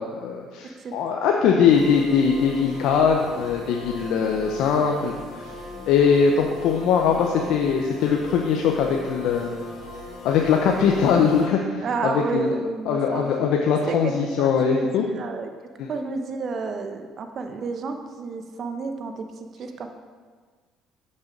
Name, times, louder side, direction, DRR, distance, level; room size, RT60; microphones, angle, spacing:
voice 1, 0.0-5.5 5.9-9.5 10.2-12.5 12.9-15.0 15.8-15.9, left 6 dB, 75° left, 2 dB, 0.7 m, -21 dB
sound 1, 1.7-11.5, left 2 dB, 60° left, 2.5 m, -39 dB
voice 2, 11.8-13.3 13.9-15.5 15.9-19.2 19.6-19.9, right 4 dB, 50° right, 6 dB, 0.9 m, -30 dB
7.4 x 6.4 x 5.2 m, 1.5 s
cardioid pair, 90°, 0 cm